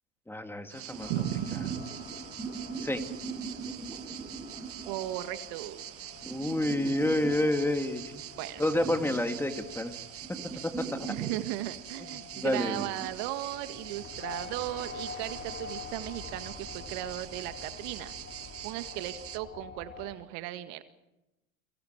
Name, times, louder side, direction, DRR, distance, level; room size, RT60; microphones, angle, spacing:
voice 1, 0.3-1.1 2.8-3.0 6.3-8.2 8.6-9.9 10.6-11.1 12.4-12.9, left 1 dB, 5° left, 6 dB, 2.3 m, -29 dB
sound 1, 0.7-19.4, right 12 dB, 35° right, 1.6 m, -44 dB
sound 2, 0.9-5.4 6.2-7.7 8.1-9.3 9.7-9.8 10.2-11.6 12.3-13.1, right 4 dB, 10° right, 7.1 m, -40 dB
sound 3, 1.0-20.1, left 5 dB, 30° left, 2.9 m, -48 dB
voice 2, 1.1-1.9 4.9-5.9 8.4-8.6 10.5-10.6 11.1-18.1 18.6-20.8, right 15 dB, 55° right, 10 dB, 1.8 m, -36 dB
30.0 x 24.5 x 4.7 m, 0.94 s
hypercardioid pair, 90°, 40 cm